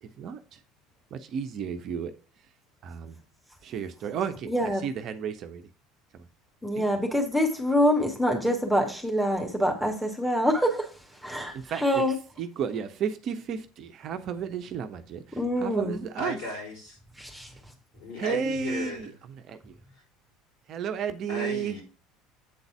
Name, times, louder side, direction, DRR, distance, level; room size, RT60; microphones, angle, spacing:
voice 1, 1.1-2.1 2.8-3.2 3.6-4.5 4.8-5.6 6.8-6.9 11.7-12.0 12.4-15.2 15.6-16.4 18.2-19.7 20.7-21.8, right 7 dB, 45° right, 9 dB, 0.6 m, -32 dB
voice 2, 4.5-4.9 6.6-10.9 11.2-12.1 15.3-16.0 17.2-17.5, equal, ahead, 2 dB, 1.8 m, -25 dB
voice 3, 16.2-17.0 17.9-19.2 21.3-21.8, left 2 dB, 55° left, 0 dB, 3.8 m, -35 dB
8.2 x 4.0 x 5.7 m, 0.35 s
figure-of-eight pair, 65°, 0 cm